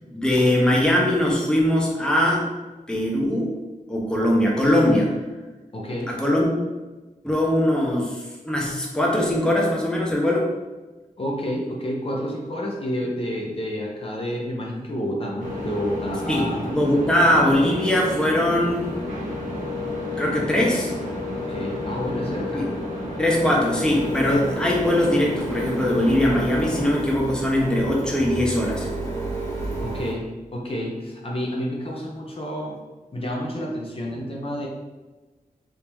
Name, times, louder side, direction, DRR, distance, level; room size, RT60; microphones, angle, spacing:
voice 1, 0.1-2.4 2.9-3.5 3.9-5.1 6.1-6.5 7.2-10.5 16.3-18.9 20.2-20.9 22.5-22.7 23.2-28.9, left 1 dB, 5° left, -3 dB, 0.8 m, -21 dB
voice 2, 5.7-6.2 11.2-16.7 21.5-22.7 29.8-32.8 33.1-34.7, equal, 40° left, -2 dB, 0.8 m, -29 dB
sound 1, 15.4-26.9, left 1 dB, 60° right, 1.1 m, -31 dB
Printer, 23.8-30.1, right 2 dB, 25° left, 1.4 m, -32 dB
3.6 x 2.7 x 4.5 m, 1.2 s
wide cardioid pair, 95°, 14 cm